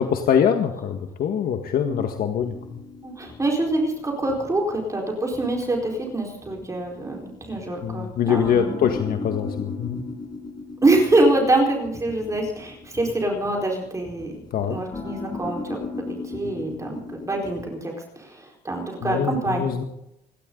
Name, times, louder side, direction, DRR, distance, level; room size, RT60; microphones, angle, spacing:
voice 1, 0.0-2.5 7.8-10.0 14.5-14.7 19.0-19.8, left 8 dB, 60° left, 5 dB, 1.7 m, -23 dB
sound 1, 2.4-17.6, left 3 dB, 25° left, 5.6 m, -37 dB
voice 2, 3.0-8.9 10.8-14.3 14.7-19.6, right 2 dB, 20° right, 0 dB, 4.5 m, -25 dB
28.5 x 12.0 x 4.0 m, 0.82 s
cardioid pair, 110°, 17 cm